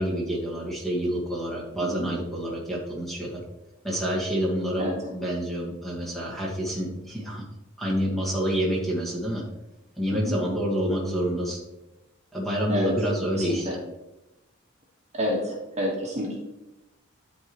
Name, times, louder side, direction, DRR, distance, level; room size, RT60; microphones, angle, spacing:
voice 1, 0.0-3.4 3.8-7.4 7.8-9.4 10.0-11.6 12.3-13.7, equal, ahead, -4 dB, 1.8 m, -28 dB
voice 2, 13.4-13.7 15.1-16.4, equal, 35° right, -2 dB, 1.6 m, -29 dB
11.5 x 4.7 x 3.1 m, 0.98 s
head